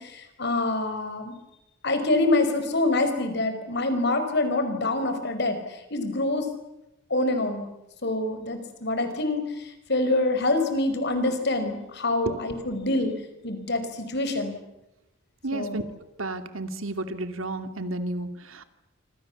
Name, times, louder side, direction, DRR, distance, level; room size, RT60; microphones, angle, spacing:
voice 1, 0.0-1.3 1.8-5.6 5.9-6.5 7.1-7.7 8.0-9.4 9.9-13.1 13.4-14.6 15.5-15.8, left 2 dB, 55° left, 8 dB, 4.9 m, -25 dB
voice 2, 15.4-15.8 16.2-18.6, right 2 dB, 80° right, 9 dB, 2.5 m, -32 dB
27.0 x 26.5 x 7.3 m, 0.92 s
head